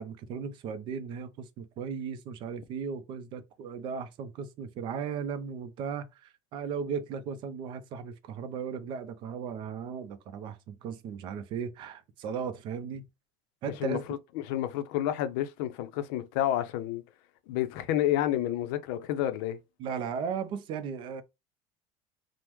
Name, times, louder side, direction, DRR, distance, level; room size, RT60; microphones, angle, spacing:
voice 1, 0.0-13.0 13.6-14.0 19.8-21.2, right 6 dB, 45° right, 0.5 m, -36 dB
voice 2, 13.8-14.2 14.5-17.0 17.5-19.6, left 12 dB, 75° left, 0.5 m, -30 dB
3.4 x 2.0 x 3.0 m
cardioid pair, 150°, 11 cm